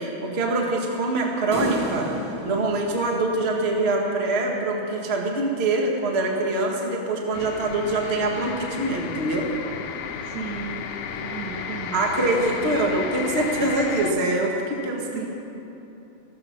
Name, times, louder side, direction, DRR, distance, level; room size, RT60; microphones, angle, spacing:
voice 1, 0.0-2.1 2.4-9.5 11.9-15.3, right 2 dB, 55° right, 0 dB, 0.6 m, -24 dB
sound 1, 1.5-3.9, right 1 dB, 35° right, 2.1 m, -32 dB
sound 2, 7.3-14.1, left 7 dB, 70° left, 2.0 m, -33 dB
voice 2, 10.3-10.8 11.2-12.0 12.6-12.8 15.1-15.3, right 7 dB, 75° right, 2 dB, 1.7 m, -35 dB
14.5 x 14.0 x 6.0 m, 2.9 s
omnidirectional pair, 4.1 m